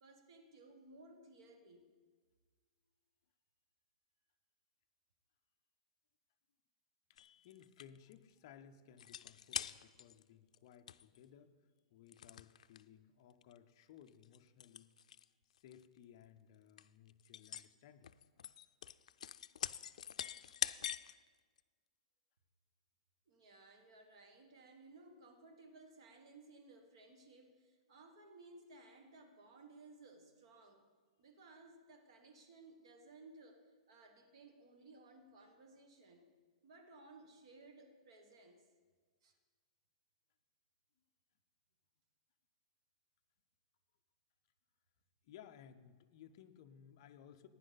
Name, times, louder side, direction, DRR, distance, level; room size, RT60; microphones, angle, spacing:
voice 1, 0.0-1.8 23.3-30.9 31.2-36.3 36.6-38.7 39.2-39.3, right 2 dB, 50° right, 4 dB, 1.4 m, -59 dB
voice 2, 7.1-11.6 11.9-14.9 15.5-18.1 18.3-18.4 45.2-47.5, left 9 dB, 35° left, 7 dB, 0.6 m, -60 dB
sound 1, 7.2-8.1 9.0-10.2 10.5-10.6 10.9-11.2 12.1-12.8 13.4-13.6 14.1-15.2 15.6-15.8 16.4-16.5 16.8-17.7 18.0-21.2 21.6-21.7, left 9 dB, 85° left, 0.4 m, -44 dB
15.5 x 10.0 x 4.0 m, 1.5 s
supercardioid pair, 175°, 4 cm